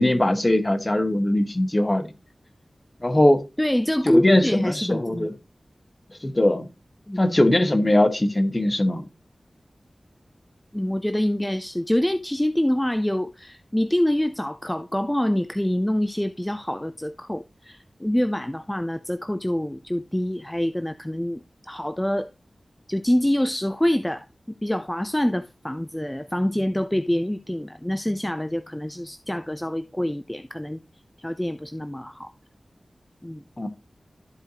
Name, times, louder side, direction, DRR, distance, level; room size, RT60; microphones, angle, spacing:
voice 1, 0.0-2.1 3.0-3.4 4.0-5.3 6.2-6.7 7.2-9.1 33.6-33.7, left 1 dB, 30° left, 1.2 m, -20 dB
voice 2, 3.6-5.3 7.1-7.2 10.7-22.3 22.9-24.2 24.6-30.8 31.2-32.3 33.2-33.4, left 1 dB, 10° left, 0.4 m, -25 dB
13.0 x 4.6 x 2.8 m
wide cardioid pair, 60°, 0 cm